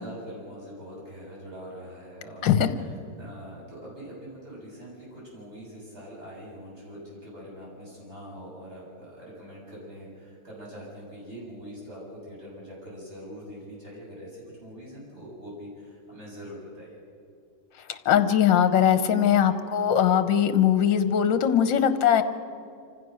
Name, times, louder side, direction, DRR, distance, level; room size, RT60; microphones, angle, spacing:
voice 1, 0.0-17.0, equal, 30° right, -6 dB, 7.3 m, -43 dB
voice 2, 17.9-22.2, left 9 dB, 70° left, 10 dB, 1.7 m, -21 dB
26.5 x 15.5 x 6.4 m, 2.4 s
omnidirectional pair, 2.2 m